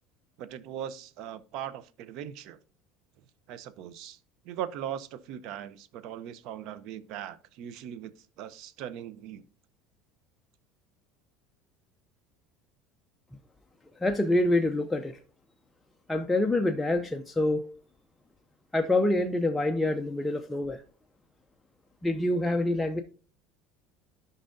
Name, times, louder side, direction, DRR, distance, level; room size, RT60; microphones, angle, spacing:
voice 1, 0.4-2.6 3.5-4.2 4.4-9.4, right 10 dB, 60° right, 0.6 m, -39 dB
voice 2, 14.0-15.2 16.1-17.7 18.7-20.8 22.0-23.0, left 2 dB, 10° left, 0.5 m, -26 dB
13.5 x 5.4 x 2.6 m
supercardioid pair, 130°, 0 cm